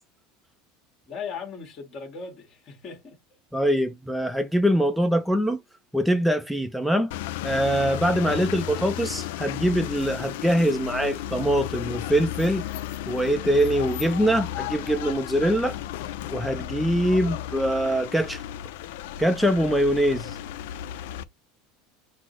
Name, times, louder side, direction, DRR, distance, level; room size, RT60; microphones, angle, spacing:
voice 1, 1.1-3.2, left 5 dB, 35° left, 1.6 m, -38 dB
voice 2, 3.5-5.6 5.9-7.1 7.4-12.6 13.1-15.8 16.3-18.4 19.2-20.4, equal, ahead, 0.4 m, -23 dB
sound 1, 7.1-21.2, left 12 dB, 75° left, 0.4 m, -34 dB
4.1 x 2.0 x 4.4 m
supercardioid pair, 140°, 0 cm